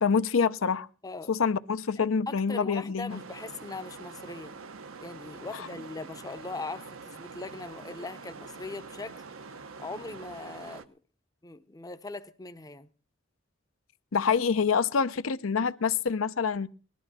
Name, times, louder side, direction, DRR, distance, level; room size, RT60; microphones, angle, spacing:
voice 1, 0.0-0.9 1.3-3.2 14.1-16.7, left 6 dB, 80° left, 0.6 m, -26 dB
voice 2, 1.0-1.3 2.0-4.5 5.0-9.2 9.5-11.0 11.4-12.9, left 3 dB, 20° left, 0.6 m, -40 dB
sound 1, 3.1-10.8, right 4 dB, 85° right, 1.0 m, -45 dB
19.0 x 12.5 x 4.1 m
head